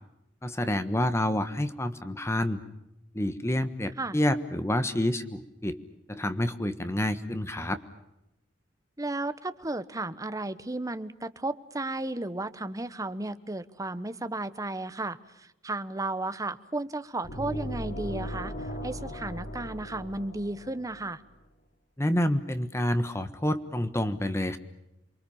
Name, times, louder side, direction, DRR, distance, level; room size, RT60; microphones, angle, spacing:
voice 1, 0.4-2.6 3.1-5.8 6.1-7.8 22.0-24.6, left 1 dB, 15° left, 10 dB, 1.3 m, -28 dB
voice 2, 9.0-21.2, right 2 dB, 20° right, 12 dB, 1.1 m, -34 dB
sound 1, 17.2-21.1, equal, 60° left, 3.5 m, -37 dB
28.5 x 23.5 x 7.1 m, 0.87 s
head